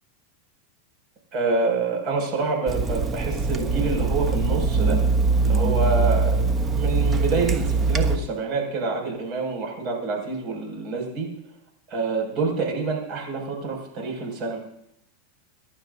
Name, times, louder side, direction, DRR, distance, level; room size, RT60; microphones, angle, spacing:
voice 1, 1.3-5.0 5.4-6.4 6.7-11.3 11.9-14.6, right 4 dB, 45° right, 1 dB, 7.0 m, -27 dB
Water tap faucet / Sink (filling or washing), 2.7-8.2, right 3 dB, 25° right, 1.1 m, -22 dB
28.5 x 11.0 x 2.9 m, 0.79 s
supercardioid pair, 125°, 0 cm